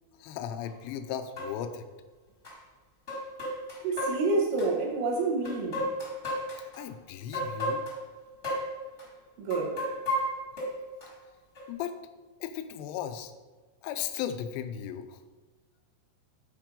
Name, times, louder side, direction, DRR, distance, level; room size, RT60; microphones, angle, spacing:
voice 1, 0.2-1.9 6.8-7.8 11.7-12.0 12.4-13.3 13.8-15.2, left 9 dB, 85° left, 2.6 m, -36 dB
sound 1, 0.6-0.7 1.4-1.5 2.4-2.5 3.1-4.7 5.4-6.8 7.3-8.0 8.4-8.7 9.0-9.1 9.5-11.1 11.5-11.7, equal, 45° left, 0.8 m, -32 dB
voice 2, 3.8-5.8 9.4-9.8, right 3 dB, 85° right, 3.7 m, -28 dB
10.0 x 4.7 x 3.8 m
omnidirectional pair, 5.4 m